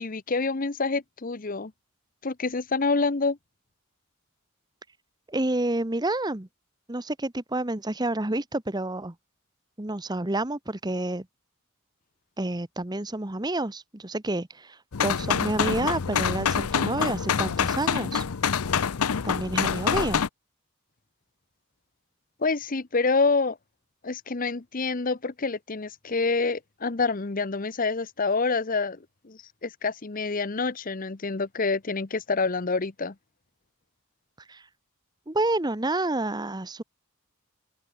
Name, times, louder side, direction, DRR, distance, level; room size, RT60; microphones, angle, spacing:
voice 1, 0.0-1.7 2.2-3.4 22.4-23.6 24.0-29.0 29.2-33.1, left 4 dB, 40° left, 0.8 m, -27 dB
voice 2, 5.3-6.5 6.9-9.1 9.8-11.3 12.4-18.2 19.2-20.2 34.5-34.6 35.3-36.8, right 2 dB, 20° right, 1.0 m, -29 dB
sound 1, 14.9-20.3, left 7 dB, 85° left, 0.7 m, -26 dB
open air
head